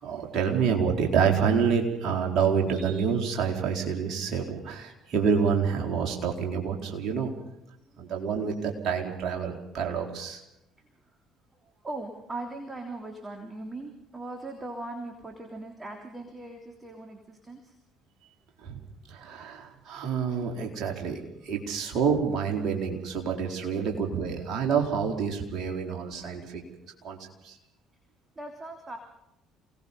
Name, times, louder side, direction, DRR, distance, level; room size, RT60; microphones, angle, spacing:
voice 1, 0.0-7.3 8.0-10.4 18.6-18.8 19.1-26.6 27.0-27.2 27.4-27.6, right 6 dB, 50° right, 2 dB, 4.2 m, -28 dB
voice 2, 11.8-17.7 23.9-24.0 26.1-26.2 28.3-29.0, right 2 dB, 20° right, 3 dB, 3.2 m, -39 dB
28.5 x 18.5 x 5.5 m, 0.85 s
figure-of-eight pair, 55°, 0 cm